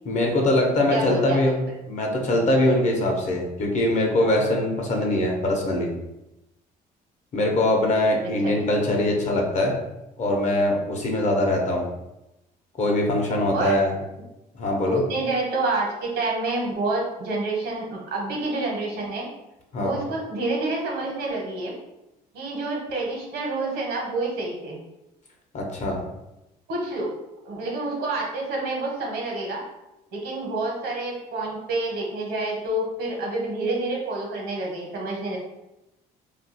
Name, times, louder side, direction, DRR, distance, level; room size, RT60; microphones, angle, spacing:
voice 1, 0.0-1.6 1.9-5.9 7.3-9.7 10.2-11.9 12.8-13.9 14.5-15.0 19.7-20.0 25.5-26.0, left 1 dB, 45° left, 0 dB, 0.8 m, -22 dB
voice 2, 0.9-1.4 8.4-8.6 13.5-13.8 14.8-19.3 19.8-21.7 22.3-24.8 26.7-27.1 27.4-29.6 30.1-35.4, right 2 dB, 75° right, -1 dB, 1.1 m, -28 dB
2.5 x 2.3 x 4.0 m, 0.93 s
cardioid pair, 110°, 17 cm